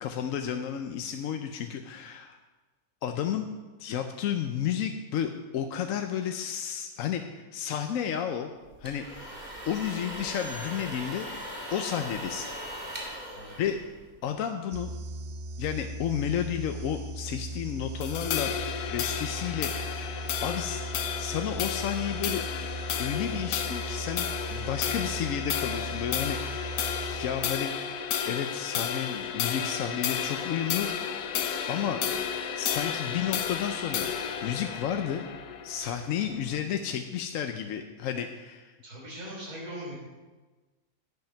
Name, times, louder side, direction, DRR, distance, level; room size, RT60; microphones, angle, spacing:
voice 1, 0.0-2.4 3.0-3.5 3.8-8.5 8.8-11.3 11.7-12.5 13.6-13.8 14.2-14.9 15.6-18.5 18.9-20.9 21.2-22.4 23.0-24.3 24.5-27.7 28.3-30.9 31.7-32.0 32.6-34.1 34.4-35.3 35.6-38.7, left 9 dB, 65° left, 6 dB, 0.9 m, -32 dB
sound 1, 8.6-14.4, equal, 30° right, 2.2 m, -39 dB
sound 2, 14.7-27.8, right 1 dB, 60° right, 0.6 m, -38 dB
sound 3, 18.0-36.6, left 8 dB, 85° left, 1.3 m, -32 dB
voice 2, 38.8-39.9, equal, 75° right, -3 dB, 4.1 m, -40 dB
10.5 x 7.9 x 5.7 m, 1.3 s
omnidirectional pair, 1.6 m